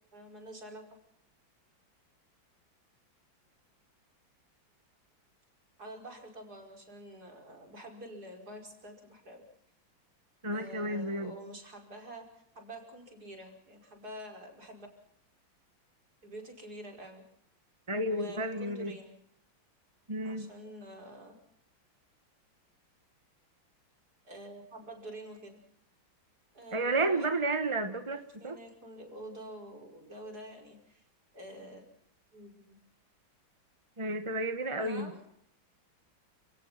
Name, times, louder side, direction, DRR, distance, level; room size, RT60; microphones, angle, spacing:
voice 1, 0.1-0.8 5.8-9.4 10.5-12.3 12.5-14.9 16.2-17.2 18.1-19.2 20.2-21.4 24.2-25.6 26.5-27.3 28.4-31.0 31.3-31.9 32.3-32.8 34.8-35.2, right 1 dB, 45° right, 3 dB, 5.8 m, -47 dB
voice 2, 10.4-11.3 17.9-18.9 20.1-20.5 26.7-28.6 34.0-35.1, right 2 dB, 15° right, 8 dB, 1.2 m, -31 dB
29.5 x 18.5 x 5.9 m, 0.73 s
omnidirectional pair, 2.2 m